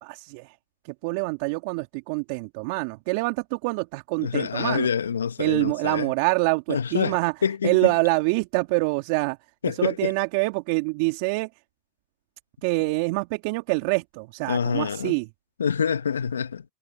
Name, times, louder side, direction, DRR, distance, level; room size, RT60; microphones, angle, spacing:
voice 1, 0.0-0.5 0.8-4.9 5.4-7.3 7.6-9.4 9.7-11.5 12.6-15.3, right 29 dB, 55° right, 2.4 m, -25 dB
voice 2, 4.2-6.1 6.7-7.2 7.4-7.9 9.6-10.1 14.5-15.1 15.6-16.6, left 7 dB, 85° left, 1.2 m, -26 dB
hypercardioid pair, 100°, 0 cm